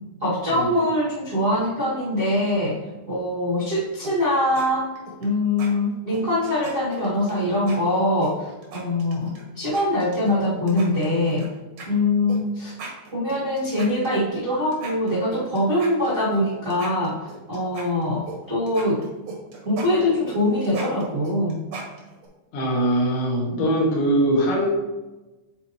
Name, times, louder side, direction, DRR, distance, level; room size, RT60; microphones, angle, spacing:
voice 1, 0.2-2.8 3.1-4.9 5.2-11.5 11.9-12.7 13.1-17.2 17.5-19.0 19.6-21.5, left 1 dB, 90° right, -11 dB, 0.7 m, -23 dB
sound 1, 4.0-4.7 5.0-5.3 5.6-5.7 6.1-7.3 7.7-7.8 8.2-9.4 9.7-10.4 10.7-11.5 11.8-11.9 12.3-12.4 12.7-14.4 14.7-16.4 16.7-18.4 18.7-22.3, right 4 dB, 70° right, 1.6 m, -38 dB
voice 2, 22.5-24.7, right 1 dB, 80° left, -4 dB, 4.1 m, -21 dB
9.9 x 4.3 x 3.0 m, 1.1 s
omnidirectional pair, 5.2 m